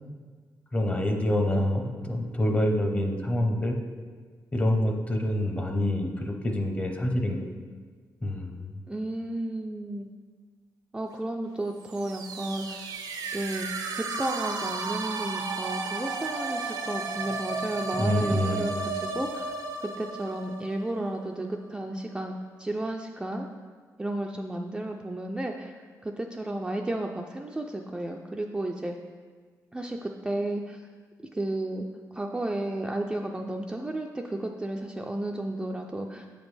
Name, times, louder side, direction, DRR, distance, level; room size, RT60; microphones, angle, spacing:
voice 1, 0.7-3.8 4.5-7.4 8.2-8.5 18.0-18.7, left 1 dB, 20° left, 3 dB, 0.7 m, -26 dB
voice 2, 8.9-10.1 10.9-12.9 13.3-19.5 19.8-23.5 24.0-25.8 26.0-29.0 29.7-30.8 31.3-31.8 32.1-36.3, right 1 dB, 10° right, 2 dB, 0.3 m, -33 dB
sound 1, 11.8-21.6, right 4 dB, 85° right, 0.5 m, -34 dB
7.9 x 5.1 x 3.2 m, 1.6 s
cardioid pair, 120°, 7 cm